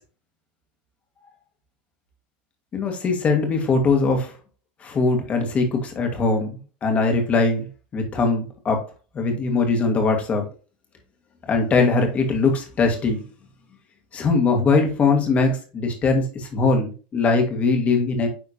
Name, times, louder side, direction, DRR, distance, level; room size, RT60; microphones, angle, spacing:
voice 1, 2.7-4.3 4.8-7.7 7.9-8.8 9.1-10.4 11.4-13.2 14.1-18.3, left 4 dB, 25° left, 3 dB, 1.8 m, -21 dB
9.7 x 3.6 x 2.8 m, 0.35 s
supercardioid pair, 140°, 5 cm